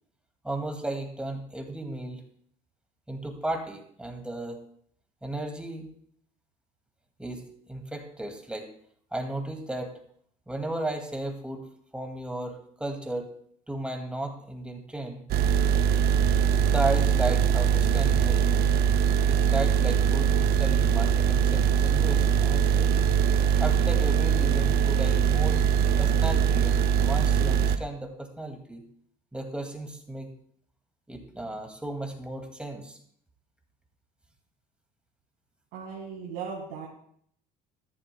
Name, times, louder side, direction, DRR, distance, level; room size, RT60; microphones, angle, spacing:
voice 1, 0.4-2.2 3.1-4.6 5.2-5.9 7.2-8.7 9.1-10.0 10.5-11.6 11.9-13.3 13.7-15.2 16.6-18.7 19.3-23.1 23.6-25.6 26.0-28.8 29.3-30.3 31.1-33.0, right 2 dB, 5° right, 3 dB, 2.2 m, -34 dB
sound 1, 15.3-27.8, right 8 dB, 60° right, 0.6 m, -22 dB
voice 2, 35.7-36.9, right 6 dB, 75° right, -4 dB, 2.0 m, -37 dB
13.5 x 11.0 x 2.2 m, 0.64 s
hypercardioid pair, 75°, 19 cm